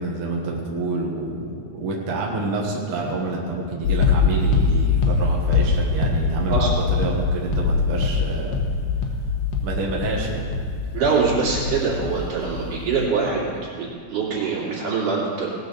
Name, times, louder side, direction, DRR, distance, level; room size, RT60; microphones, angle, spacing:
voice 1, 0.0-8.6 9.6-10.4, right 2 dB, 50° right, -2 dB, 2.1 m, -28 dB
sound 1, 3.8-12.3 12.5-13.1, left 4 dB, 60° left, 2.1 m, -22 dB
voice 2, 10.9-13.5 13.8-15.5, right 5 dB, 75° right, -4 dB, 4.1 m, -23 dB
17.5 x 6.7 x 6.8 m, 2.2 s
omnidirectional pair, 3.7 m